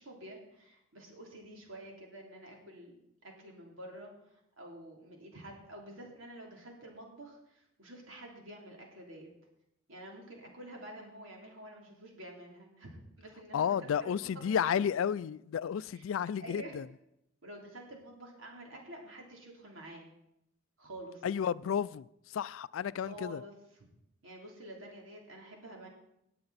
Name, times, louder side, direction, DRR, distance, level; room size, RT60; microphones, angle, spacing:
voice 1, 0.0-3.0 3.2-9.3 9.9-14.8 15.9-16.0 16.4-16.8 17.4-20.1 20.8-21.3 23.0-23.8 24.2-25.9, right 1 dB, 85° right, 3.2 m, -49 dB
voice 2, 13.5-16.9 21.2-22.1 22.3-23.4, left 8 dB, 85° left, 0.3 m, -32 dB
18.5 x 7.7 x 4.1 m
head